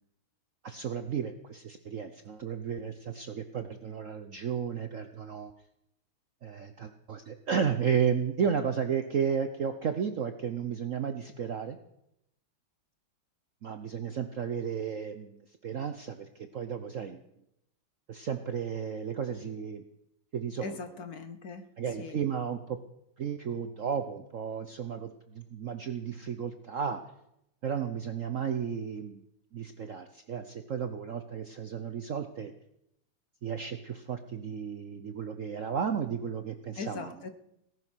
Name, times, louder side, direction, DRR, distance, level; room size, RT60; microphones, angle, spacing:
voice 1, 0.6-5.5 6.4-11.8 13.6-17.2 18.1-19.8 20.3-20.8 21.8-22.8 23.2-27.0 27.6-29.2 29.5-32.5 33.4-37.2, right 7 dB, 60° right, 8 dB, 0.8 m, -33 dB
voice 2, 20.6-21.7 22.0-22.2 36.8-37.3, left 4 dB, 55° left, 10 dB, 1.3 m, -40 dB
18.0 x 11.0 x 6.2 m, 0.80 s
omnidirectional pair, 2.2 m